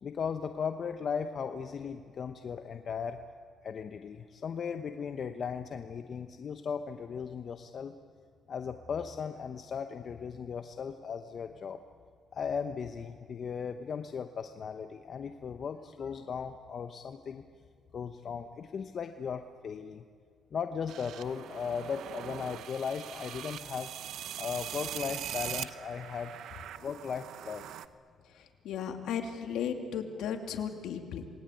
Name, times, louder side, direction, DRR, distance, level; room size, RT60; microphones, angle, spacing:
voice 1, 0.0-3.2 3.6-7.9 8.5-11.8 12.3-17.4 17.9-20.0 20.5-23.9 24.4-26.4 26.8-27.6, left 6 dB, 55° left, 7 dB, 1.0 m, -37 dB
sound 1, 20.9-27.9, right 10 dB, 80° right, 0.9 m, -41 dB
voice 2, 28.3-31.2, left 8 dB, 85° left, 5 dB, 2.5 m, -35 dB
27.5 x 20.0 x 9.2 m, 2.1 s
cardioid pair, 90°, 0 cm